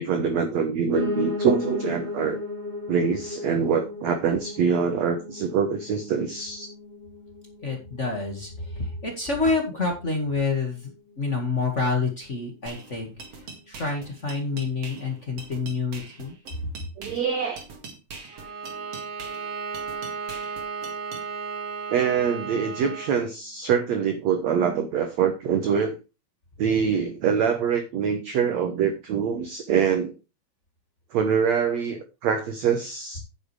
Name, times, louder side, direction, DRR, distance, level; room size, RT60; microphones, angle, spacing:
voice 1, 0.0-2.4 2.9-6.7 17.0-17.6 21.9-26.0 26.6-30.1 31.1-33.2, right 7 dB, 70° right, 6 dB, 1.6 m, -24 dB
Piano, 0.9-10.0 10.4-11.6 11.9-12.0 12.2-12.3 12.5-12.6 13.2-13.3, left 2 dB, 10° left, 3.3 m, -35 dB
voice 2, 7.6-10.9 11.2-16.3, left 4 dB, 50° left, 2 dB, 0.8 m, -28 dB
sound 1, 12.7-21.3, right 4 dB, 45° right, 2.4 m, -43 dB
Bowed string instrument, 18.3-23.2, right 5 dB, 90° right, 4.1 m, -34 dB
10.0 x 9.1 x 3.3 m, 0.28 s
omnidirectional pair, 4.6 m